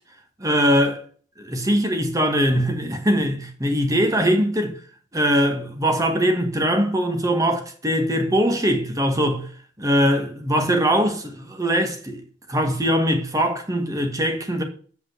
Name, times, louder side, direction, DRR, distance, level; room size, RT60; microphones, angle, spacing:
voice 1, 0.4-1.0 1.4-4.8 5.1-9.5 9.8-12.2 12.5-14.6, equal, 20° right, 1.6 m, -21 dB
8.2 x 5.4 x 6.7 m
head